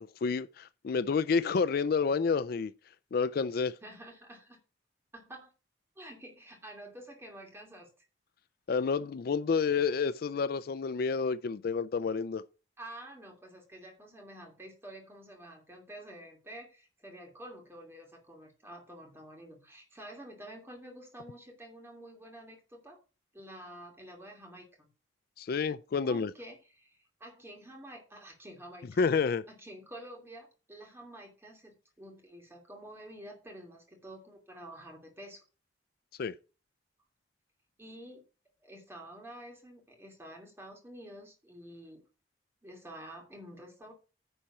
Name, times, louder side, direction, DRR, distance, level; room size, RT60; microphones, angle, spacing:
voice 1, 0.2-2.7 3.1-3.8 8.7-12.4 25.4-26.3 29.0-29.4 36.2-36.3, left 5 dB, 55° left, 0.4 m, -29 dB
voice 2, 3.8-4.6 5.1-5.5 6.0-8.0 12.8-23.0 23.3-24.9 26.0-28.9 29.6-35.4 37.8-38.2 38.6-42.0 42.6-43.9, right 1 dB, 15° right, 2.6 m, -49 dB
10.0 x 4.3 x 5.9 m
head